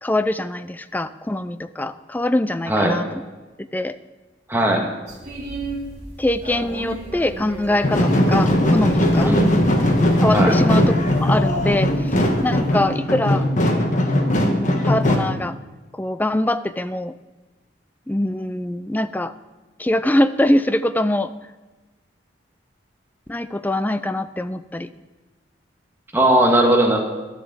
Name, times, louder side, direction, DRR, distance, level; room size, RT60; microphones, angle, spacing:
voice 1, 0.0-3.2 3.7-4.0 6.2-9.4 10.2-13.5 14.4-15.6 15.9-17.1 18.1-19.3 19.8-21.3 23.3-24.9, left 1 dB, 10° left, 12 dB, 0.4 m, -23 dB
voice 2, 4.5-4.8 9.2-9.6 10.3-10.5 26.1-27.0, right 1 dB, 10° right, 0 dB, 1.8 m, -17 dB
sound 1, 5.1-12.7, right 1 dB, 35° right, 2.8 m, -36 dB
sound 2, 7.8-15.2, left 1 dB, 40° left, 1.4 m, -19 dB
11.5 x 6.7 x 8.1 m, 1.2 s
head